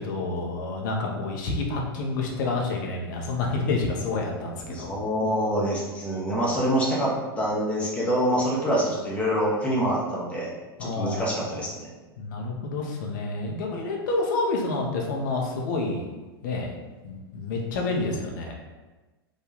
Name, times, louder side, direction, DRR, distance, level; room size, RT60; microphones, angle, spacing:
voice 1, 0.0-5.0 10.8-11.6 12.2-16.1 16.4-16.7 17.0-18.5, left 3 dB, 50° left, 0 dB, 1.0 m, -29 dB
voice 2, 4.7-10.5 10.8-11.9, equal, 10° left, -6 dB, 1.1 m, -26 dB
4.7 x 2.7 x 4.0 m, 1.2 s
figure-of-eight pair, 95°, 13 cm